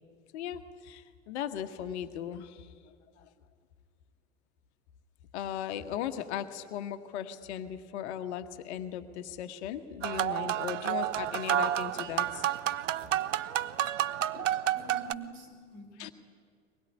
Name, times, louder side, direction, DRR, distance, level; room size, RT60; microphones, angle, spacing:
voice 1, 0.3-2.7 3.2-3.3 5.3-12.4 14.3-14.5 16.0-16.1, left 10 dB, 60° left, 8 dB, 1.5 m, -37 dB
sound 1, 10.0-15.1, right 12 dB, 75° right, 0.8 m, -30 dB
voice 2, 14.7-16.1, right 4 dB, 45° right, 4 dB, 6.3 m, -46 dB
23.0 x 20.5 x 9.7 m, 2.1 s
figure-of-eight pair, 75°, 38 cm